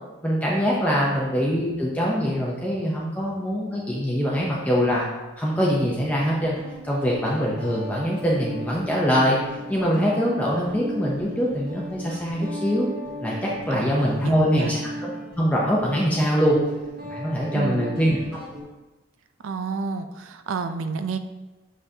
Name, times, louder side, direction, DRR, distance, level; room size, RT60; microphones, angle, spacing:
voice 1, 0.2-5.1 5.4-6.6 6.9-9.4 9.7-12.9 13.2-15.1 15.4-16.6 17.0-18.2, equal, 10° left, -5 dB, 0.6 m, -23 dB
Guitar, 5.9-18.6, equal, 50° right, 1.6 m, -37 dB
voice 2, 13.7-14.7 17.5-17.8 19.4-21.2, right 4 dB, 90° right, 8 dB, 0.5 m, -30 dB
6.4 x 5.5 x 2.8 m, 1.1 s
head